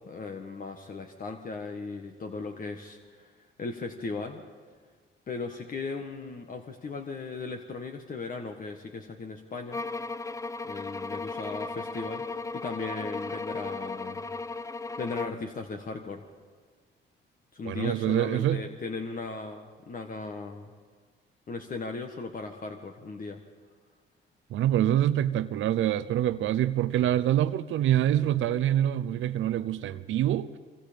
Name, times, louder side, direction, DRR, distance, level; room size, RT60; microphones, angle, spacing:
voice 1, 0.0-3.3 3.6-4.4 5.3-9.8 10.7-12.2 12.5-14.3 15.0-16.2 17.5-20.7 21.5-23.4, left 4 dB, 45° left, 1.5 m, -37 dB
sound 1, 9.7-15.5, left 3 dB, 15° left, 0.6 m, -36 dB
voice 2, 17.6-18.6 24.5-30.6, right 12 dB, 80° right, 0.7 m, -25 dB
24.5 x 24.5 x 5.2 m
cardioid pair, 90°, 20 cm